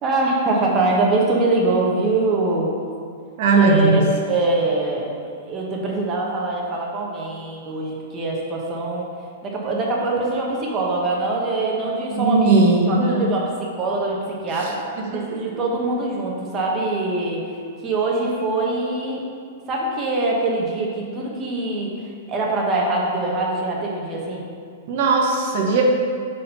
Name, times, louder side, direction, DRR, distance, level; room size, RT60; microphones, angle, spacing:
voice 1, 0.0-2.7 3.6-4.0 4.3-9.1 9.4-13.5 13.8-14.8 15.1-17.6 17.8-19.2 19.7-24.4, right 2 dB, 25° right, -3 dB, 1.1 m, -23 dB
voice 2, 3.4-4.0 12.1-13.3 14.6-14.7 15.1-15.2 24.9-25.8, right 3 dB, 55° right, 0 dB, 1.0 m, -17 dB
4.2 x 4.1 x 5.4 m, 2.3 s
hypercardioid pair, 135°, 0 cm